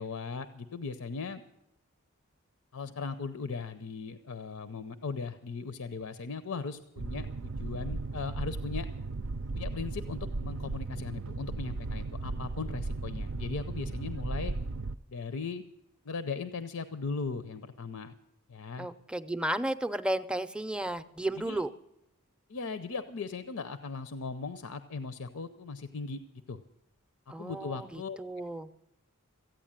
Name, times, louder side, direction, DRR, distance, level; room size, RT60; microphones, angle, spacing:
voice 1, 0.0-1.4 2.7-8.9 9.5-14.5 15.1-15.6 16.0-18.1 18.5-18.9 21.5-21.6 22.5-26.6 27.4-28.2, left 4 dB, 85° left, 11 dB, 0.7 m, -38 dB
Boat Water vehicle, 7.0-15.0, right 3 dB, 65° right, 0.5 m, -36 dB
voice 2, 18.8-21.7 27.3-28.7, right 1 dB, 5° right, 11 dB, 0.5 m, -33 dB
15.0 x 9.0 x 8.9 m, 0.88 s
head